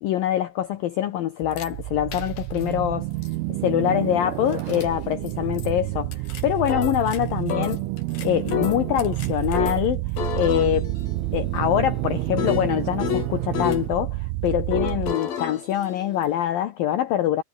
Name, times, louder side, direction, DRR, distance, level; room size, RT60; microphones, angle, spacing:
voice 1, 0.0-3.1 3.6-7.8 8.2-10.0 10.3-10.9 11.3-17.4, left 12 dB, 90° left, 2.0 m, -24 dB
sound 1, 1.4-15.1, right 20 dB, 90° right, 3.5 m, -29 dB
sound 2, 1.5-1.7 2.1-2.6 3.2-3.3 4.5-4.9 5.3-5.4 5.6-5.7 6.1-7.2 7.5-9.8 10.2-13.9 14.7-16.5, left 7 dB, 50° left, 4.5 m, -30 dB
omnidirectional pair, 5.8 m